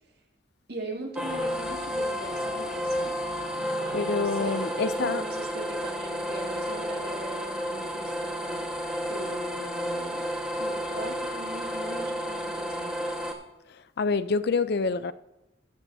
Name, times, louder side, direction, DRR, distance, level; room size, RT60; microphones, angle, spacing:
voice 1, 0.7-3.2 3.5-8.7 9.1-10.3 10.6-13.2, right 1 dB, 55° right, 2.2 m, -40 dB
sound 1, 1.1-13.3, equal, 5° right, 1.3 m, -31 dB
voice 2, 3.9-5.2 14.0-15.1, left 4 dB, 55° left, 0.5 m, -26 dB
16.0 x 13.5 x 2.7 m
head